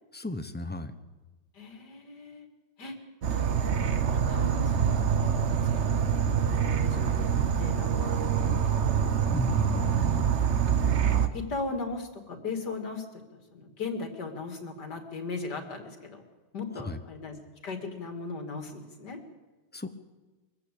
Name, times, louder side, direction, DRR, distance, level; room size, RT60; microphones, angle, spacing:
voice 1, 0.1-0.9 9.3-10.3 16.7-17.0 19.7-19.9, left 2 dB, 10° left, 9 dB, 0.8 m, -34 dB
voice 2, 1.5-2.5 2.8-3.0 3.5-4.0 4.3-5.3 5.6-8.2 9.2-10.1 10.6-16.2 16.5-17.4 17.6-19.2, left 3 dB, 75° left, 6 dB, 3.0 m, -38 dB
Insect / Frog, 3.2-11.3, right 7 dB, 45° right, 1.2 m, -25 dB
23.0 x 14.5 x 8.5 m, 1.2 s
omnidirectional pair, 1.8 m